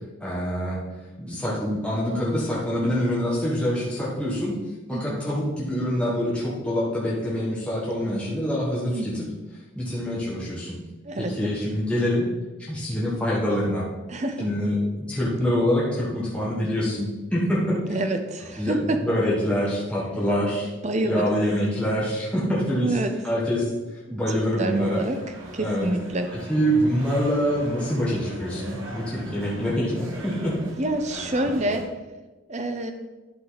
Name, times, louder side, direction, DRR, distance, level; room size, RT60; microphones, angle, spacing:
voice 1, 0.2-0.8 1.2-4.6 4.9-9.2 9.7-10.8 11.2-12.3 12.7-13.8 14.4-18.0 18.6-20.7 21.0-23.0 23.2-23.7 24.1-25.0 25.6-25.9 26.5-30.6, equal, 5° left, -7 dB, 1.4 m, -25 dB
voice 2, 4.9-5.2 8.9-9.2 11.0-11.5 14.1-14.5 17.9-19.0 20.8-21.3 22.8-23.1 24.1-25.2 25.5-26.3 30.8-31.8 32.5-32.9, right 1 dB, 35° right, 6 dB, 0.8 m, -27 dB
sound 1, 24.6-31.8, equal, 80° right, 1.9 m, -40 dB
11.0 x 5.3 x 4.0 m, 1.2 s
head